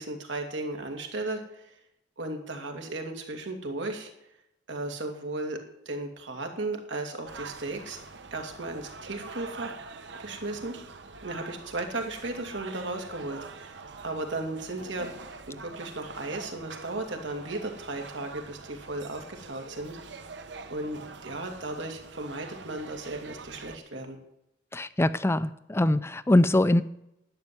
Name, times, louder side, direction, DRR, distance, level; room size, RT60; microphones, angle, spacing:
voice 1, 0.0-1.7 2.2-4.1 4.7-5.6 5.9-8.0 8.3-9.7 10.2-10.8 11.2-15.1 15.5-20.0 20.7-24.2, right 2 dB, 85° right, 3 dB, 2.5 m, -35 dB
sound 1, 7.3-23.8, right 4 dB, 70° right, 1.1 m, -45 dB
voice 2, 24.7-26.8, left 1 dB, 15° left, 14 dB, 0.4 m, -23 dB
11.5 x 7.6 x 9.6 m, 0.82 s
head